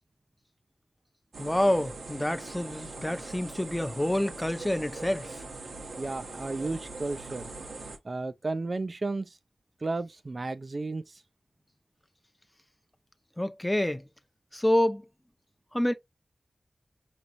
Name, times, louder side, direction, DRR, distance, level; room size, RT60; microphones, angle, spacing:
sound 1, 1.3-8.0, right 3 dB, 90° right, 1.1 m, -42 dB
voice 1, 1.4-5.4 13.4-14.0 14.5-15.0 15.7-15.9, left 1 dB, 10° left, 0.6 m, -27 dB
voice 2, 6.0-7.5 8.0-9.4 9.8-11.2, right 3 dB, 55° right, 0.4 m, -33 dB
5.1 x 3.0 x 2.6 m
cardioid pair, 50°, 0 cm